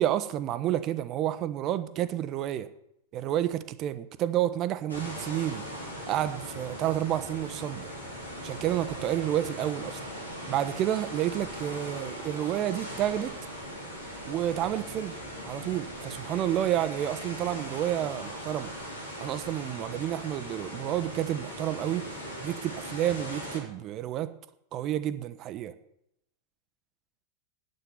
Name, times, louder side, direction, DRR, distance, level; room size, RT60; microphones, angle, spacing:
voice 1, 0.0-2.7 3.1-5.6 6.1-7.9 8.4-10.0 10.5-13.3 14.2-15.1 15.5-18.7 19.2-22.1 22.4-24.3 24.7-25.7, right 12 dB, 35° right, 0.9 m, -30 dB
sound 1, 4.9-23.6, equal, 80° left, 3.4 m, -39 dB
9.2 x 9.1 x 9.6 m
figure-of-eight pair, 90°, 0 cm